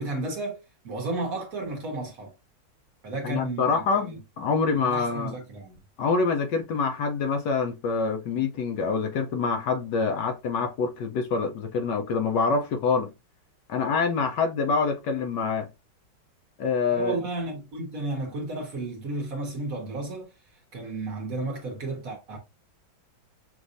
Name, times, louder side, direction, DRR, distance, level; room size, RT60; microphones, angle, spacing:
voice 1, 0.0-2.3 3.0-4.1 4.7-5.8 16.9-20.3 20.7-22.4, right 2 dB, 50° right, 1.4 m, -33 dB
voice 2, 3.2-5.3 6.0-13.1 13.7-15.7 16.6-17.2, left 4 dB, 70° left, 1.2 m, -26 dB
6.1 x 2.5 x 2.6 m
omnidirectional pair, 2.1 m